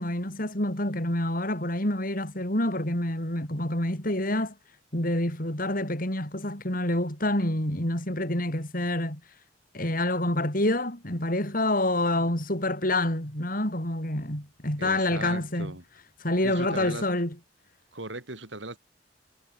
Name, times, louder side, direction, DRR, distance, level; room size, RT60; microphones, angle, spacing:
voice 1, 0.0-4.5 4.9-9.2 9.7-15.7 16.2-17.3, left 1 dB, 50° left, 7.2 m, -27 dB
voice 2, 14.8-15.8 16.4-17.1 17.9-18.8, right 2 dB, 90° right, 5.7 m, -38 dB
head